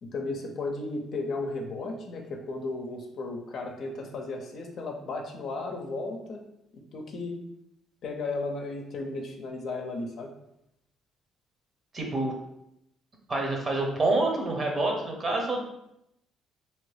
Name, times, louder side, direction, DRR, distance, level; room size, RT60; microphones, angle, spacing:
voice 1, 0.0-6.4 6.7-7.3 8.0-10.3, left 3 dB, 60° left, 2 dB, 0.6 m, -34 dB
voice 2, 11.9-12.3 13.3-15.6, right 2 dB, 40° right, 1 dB, 0.9 m, -27 dB
2.9 x 2.6 x 3.3 m, 0.80 s
cardioid pair, 80°, 0 cm